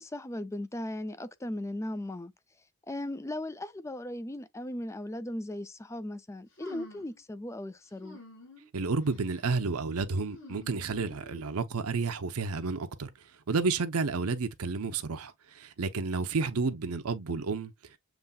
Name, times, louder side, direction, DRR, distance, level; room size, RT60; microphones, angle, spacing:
voice 1, 0.0-2.3 2.9-8.2, left 1 dB, 15° left, 0.4 m, -37 dB
sound 1, 6.6-7.2 8.0-8.7 9.1-9.5 10.3-11.5, left 2 dB, 55° left, 3.1 m, -49 dB
voice 2, 8.7-13.1 13.5-17.7, right 4 dB, 80° right, 0.7 m, -31 dB
7.1 x 3.2 x 2.3 m
head